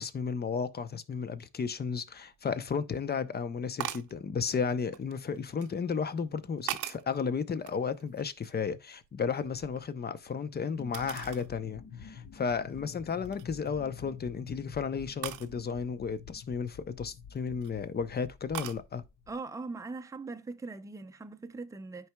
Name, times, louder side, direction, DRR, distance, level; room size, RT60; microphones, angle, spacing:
voice 1, 0.0-19.0, left 6 dB, 35° left, 0.7 m, -33 dB
sound 1, 2.3-2.4 3.8-4.2 4.9-5.7 6.3-7.2 7.6-8.7 9.0-10.3 10.9-11.5 12.0-12.1 12.7-12.9 13.3-13.7 15.2-15.5 17.2-17.7 18.5-18.8, right 13 dB, 90° right, 0.6 m, -40 dB
sound 2, 10.8-19.3, left 6 dB, 60° left, 1.2 m, -48 dB
voice 2, 19.3-22.1, right 3 dB, 10° right, 0.6 m, -41 dB
10.5 x 4.7 x 2.3 m
cardioid pair, 90°, 30 cm